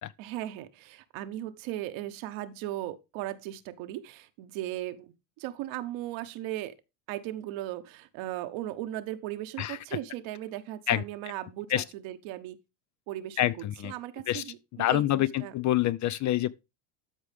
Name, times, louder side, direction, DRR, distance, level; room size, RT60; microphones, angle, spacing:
voice 1, 0.2-6.8 7.1-12.6 13.1-15.5, right 14 dB, 70° right, 1.1 m, -37 dB
voice 2, 13.4-13.9 14.3-14.4 14.8-16.6, left 13 dB, 40° left, 0.4 m, -26 dB
13.0 x 4.8 x 3.4 m
supercardioid pair, 110°, 48 cm